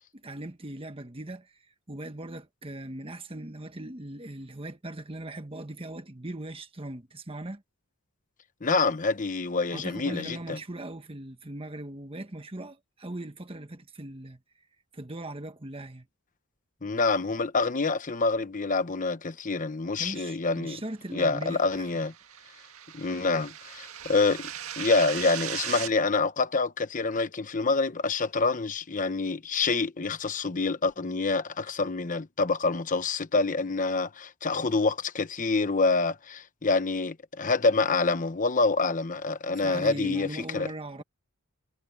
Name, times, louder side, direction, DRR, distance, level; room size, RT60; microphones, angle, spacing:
voice 1, 0.1-1.5 1.9-7.6 9.7-14.4 14.9-16.1 20.0-21.9 39.6-41.0, right 1 dB, 25° right, 1.4 m, -39 dB
voice 2, 8.6-10.6 16.8-20.8 21.1-22.1 22.9-40.3 40.5-40.7, left 3 dB, 35° left, 0.9 m, -27 dB
sound 1, 21.5-25.9, right 10 dB, 80° right, 1.8 m, -38 dB
head